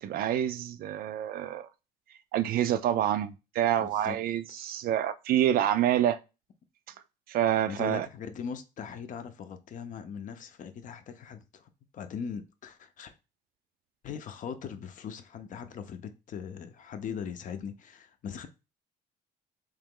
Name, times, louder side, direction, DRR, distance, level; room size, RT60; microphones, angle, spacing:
voice 1, 0.0-1.7 2.3-6.2 7.3-8.1, right 11 dB, 60° right, 0.4 m, -27 dB
voice 2, 3.8-4.2 4.5-4.8 7.7-13.2 14.0-18.5, left 7 dB, 50° left, 0.6 m, -40 dB
3.2 x 2.9 x 3.7 m
cardioid pair, 110°, 17 cm